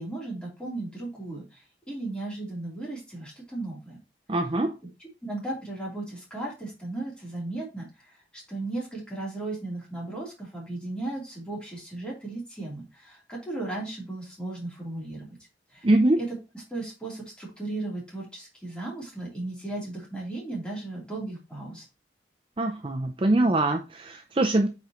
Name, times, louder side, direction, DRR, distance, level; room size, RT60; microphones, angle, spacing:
voice 1, 0.0-4.0 5.0-8.1 8.3-15.4 15.7-15.9 16.2-16.3 16.7-21.8, right 2 dB, 5° left, -5 dB, 3.5 m, -36 dB
voice 2, 4.3-4.7 15.8-16.2 22.6-24.7, right 2 dB, 30° right, 6 dB, 0.6 m, -23 dB
8.5 x 5.0 x 3.1 m, 0.27 s
head